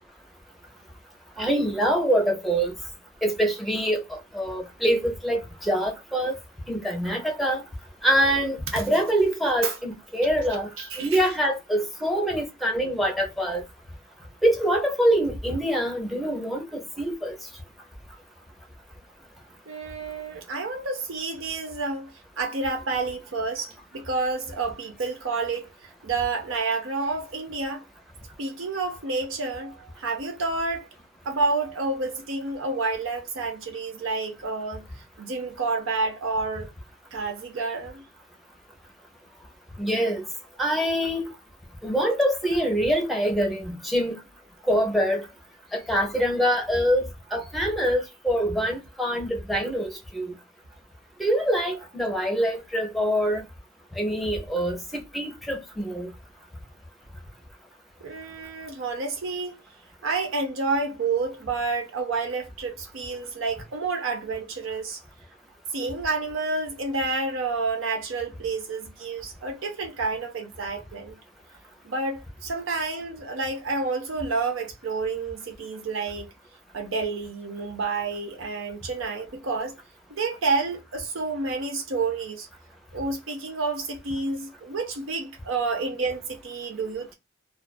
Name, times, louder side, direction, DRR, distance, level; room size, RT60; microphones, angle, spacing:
voice 1, 1.4-2.7 3.2-6.3 6.7-7.6 8.0-10.7 11.0-13.6 14.4-17.4 39.8-40.3 40.6-41.3 41.8-44.2 44.7-45.2 45.7-47.0 47.3-50.3 51.2-53.4 54.0-56.1, equal, ahead, 0.7 m, -25 dB
voice 2, 10.8-11.3 19.7-27.8 28.4-30.9 31.3-34.8 35.2-36.7 37.1-38.0 58.0-59.6 60.0-65.0 65.7-71.2 71.8-76.3 76.7-79.8 80.1-82.5 82.9-87.1, right 3 dB, 80° right, 0.6 m, -29 dB
2.4 x 2.3 x 2.2 m
head